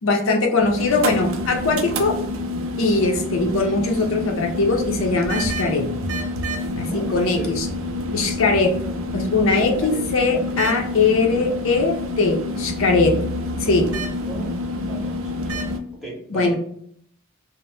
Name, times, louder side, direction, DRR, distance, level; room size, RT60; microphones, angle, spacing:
voice 1, 0.0-2.1 2.8-5.9 6.8-7.7 8.1-8.7 9.1-13.1 13.6-13.9 16.3-16.5, left 3 dB, 75° left, 2 dB, 0.5 m, -20 dB
sound 1, 0.6-15.8, left 1 dB, 75° right, 0.4 m, -28 dB
voice 2, 6.9-7.5 9.5-10.0 13.6-14.0 14.3-14.5 14.8-15.6 15.9-16.5, right 2 dB, ahead, -4 dB, 0.7 m, -36 dB
2.7 x 2.0 x 3.2 m, 0.66 s
head